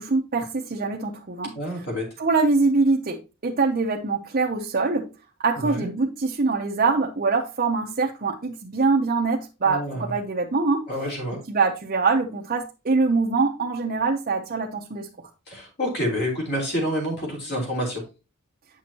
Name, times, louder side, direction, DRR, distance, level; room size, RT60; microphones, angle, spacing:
voice 1, 0.0-1.6 2.2-5.1 5.4-10.8 11.5-15.1, right 4 dB, 40° right, 0.7 m, -23 dB
voice 2, 1.5-2.1 5.6-5.9 9.6-10.1 10.9-11.4 15.5-18.0, equal, 50° left, 3.5 m, -28 dB
8.6 x 6.0 x 2.8 m
head